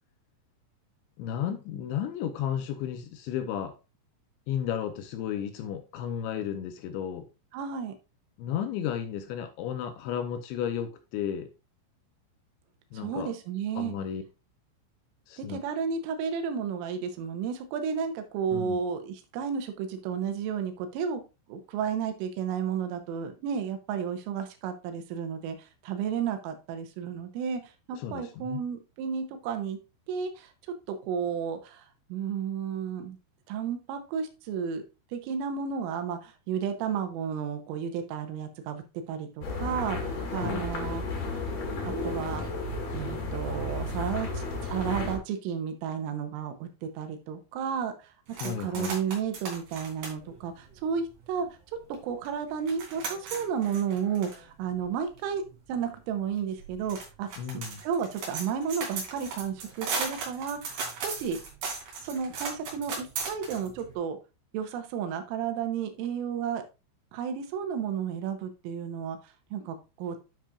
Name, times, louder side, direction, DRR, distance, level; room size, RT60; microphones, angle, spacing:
voice 1, 1.2-3.7 4.5-7.3 8.4-11.5 12.9-13.3 13.8-14.2 15.3-15.6 18.5-18.8 27.9-28.6 40.3-40.7 48.3-49.0 57.4-57.8, left 9 dB, 80° left, 2.8 m, -33 dB
voice 2, 7.5-7.9 12.9-13.9 15.4-21.2 21.5-29.8 30.1-30.5 30.9-33.2 33.5-34.8 35.1-41.2 42.0-42.4 42.9-48.1 48.4-51.5 52.0-55.4 55.7-57.3 57.5-61.4 62.0-64.2 64.5-66.6 67.1-70.2, right 7 dB, 90° right, 3.5 m, -32 dB
sound 1, 39.4-45.2, left 2 dB, 45° left, 3.5 m, -33 dB
sound 2, 48.3-51.5 51.9-52.0 52.3-63.9, right 4 dB, 50° right, 3.7 m, -37 dB
10.5 x 7.0 x 2.4 m
omnidirectional pair, 5.8 m